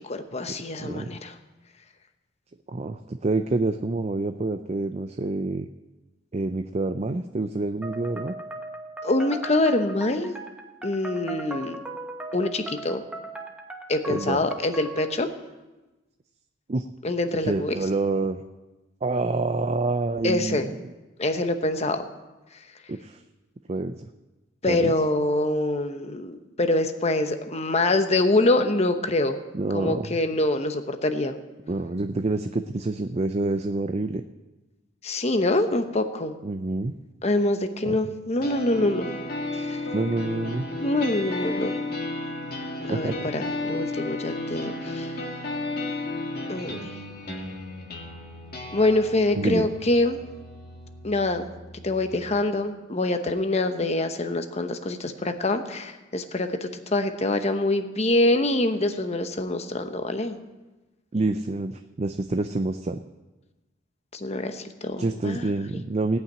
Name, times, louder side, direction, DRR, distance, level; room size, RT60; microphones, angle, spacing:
voice 1, 0.0-1.4 9.0-10.3 10.8-11.8 12.3-13.0 13.9-15.3 17.0-17.8 20.2-20.7 21.2-22.0 24.6-29.4 29.7-31.3 35.0-36.4 37.2-39.1 39.5-39.9 40.8-41.8 42.9-45.1 46.5-46.9 48.7-50.2 51.0-51.5 51.8-60.4 64.1-65.4, left 2 dB, 35° left, 8 dB, 0.9 m, -25 dB
voice 2, 0.8-1.1 2.7-5.7 6.3-8.3 14.1-14.4 16.7-16.8 17.4-18.4 19.0-20.8 22.9-23.2 23.7-24.0 24.7-24.9 29.5-30.1 31.7-34.2 36.4-36.9 37.9-38.0 39.9-40.7 42.9-43.3 49.4-49.7 61.1-63.0 65.0-66.2, right 2 dB, 35° right, 7 dB, 0.5 m, -27 dB
sound 1, 7.8-15.2, right 1 dB, 5° right, 1.1 m, -38 dB
sound 2, 38.4-52.4, left 2 dB, 50° left, 2.1 m, -34 dB
17.0 x 5.8 x 9.2 m, 1.1 s
head